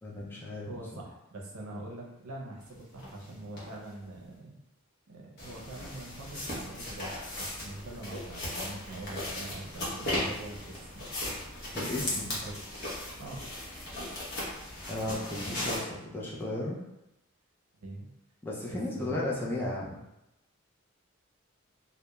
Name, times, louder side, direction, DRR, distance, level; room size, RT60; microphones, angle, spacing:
voice 1, 0.0-0.7 11.7-12.3 14.9-16.8 18.4-20.0, left 1 dB, 10° left, -5 dB, 0.3 m, -35 dB
voice 2, 0.7-4.6 5.1-11.1 12.0-12.6 13.2-13.4 15.3-15.8 17.8-18.1 18.7-19.2, right 2 dB, 80° right, -1 dB, 0.6 m, -44 dB
sound 1, 3.0-3.1 3.6-3.7 5.4-15.8, left 1 dB, 45° left, 0.7 m, -37 dB
2.3 x 2.1 x 2.9 m, 0.88 s
head